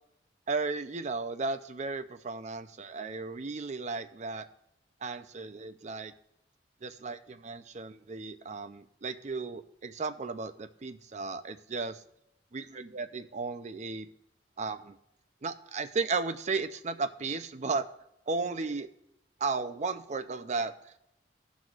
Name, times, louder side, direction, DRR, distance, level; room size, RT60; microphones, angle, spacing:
voice 1, 0.5-4.5 5.0-6.1 6.8-12.0 12.5-14.1 14.6-15.0 15.4-17.9 18.3-18.9 19.4-21.0, right 4 dB, 40° right, 10 dB, 0.5 m, -35 dB
17.0 x 6.2 x 2.5 m, 0.84 s
head